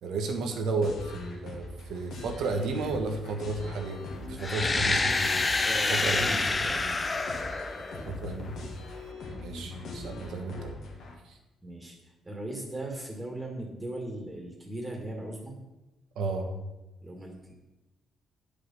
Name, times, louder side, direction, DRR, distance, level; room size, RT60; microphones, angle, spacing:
voice 1, 0.0-4.0 4.3-5.3 5.9-6.4 8.0-8.5 9.3-10.7 11.2-11.4 16.1-16.5, right 3 dB, 80° right, 3 dB, 1.5 m, -32 dB
sound 1, 0.8-11.1, left 2 dB, 70° left, 1.7 m, -42 dB
sound 2, 4.4-8.3, left 3 dB, 25° left, 0.7 m, -28 dB
voice 2, 5.6-7.1 7.8-8.1 9.5-9.7 11.6-15.6 17.0-17.5, right 1 dB, 10° right, 0 dB, 2.1 m, -39 dB
9.9 x 5.1 x 5.5 m, 1.0 s
cardioid pair, 90°, 0 cm